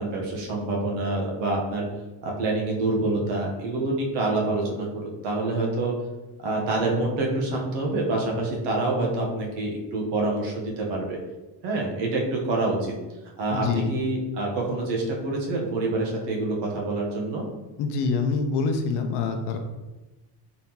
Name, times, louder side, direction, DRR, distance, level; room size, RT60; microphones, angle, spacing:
voice 1, 0.0-1.9 2.2-5.9 6.4-11.2 11.6-12.9 13.4-17.4, right 2 dB, 65° right, -1 dB, 1.1 m, -26 dB
voice 2, 13.5-13.9 17.8-19.6, left 5 dB, 60° left, 5 dB, 0.6 m, -25 dB
4.1 x 3.6 x 2.9 m, 1.1 s
cardioid pair, 170°, 46 cm